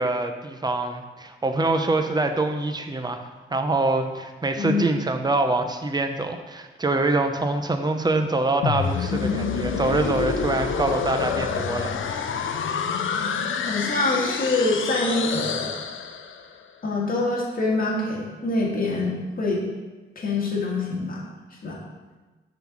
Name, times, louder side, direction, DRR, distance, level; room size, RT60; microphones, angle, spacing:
voice 1, 0.0-12.3, right 2 dB, 20° right, 6 dB, 0.6 m, -25 dB
sound 1, 8.6-16.5, left 6 dB, 70° left, 0.6 m, -27 dB
voice 2, 13.6-15.8 16.8-19.6 20.2-21.2 21.6-21.8, left 2 dB, 45° left, -4 dB, 1.9 m, -25 dB
6.9 x 4.0 x 6.1 m, 1.2 s
wide cardioid pair, 125°, 21 cm